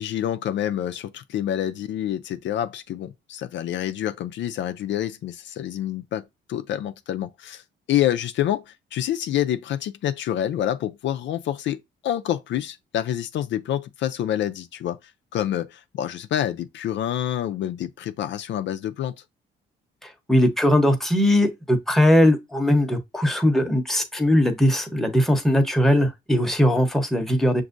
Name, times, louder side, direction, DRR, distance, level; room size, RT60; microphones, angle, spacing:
voice 1, 0.0-6.2 6.5-7.6 7.9-11.8 12.0-15.0 15.3-19.1, left 11 dB, 65° left, 0.4 m, -27 dB
voice 2, 20.0-27.6, left 1 dB, ahead, 0.9 m, -20 dB
6.0 x 2.6 x 2.5 m
cardioid pair, 90°, 20 cm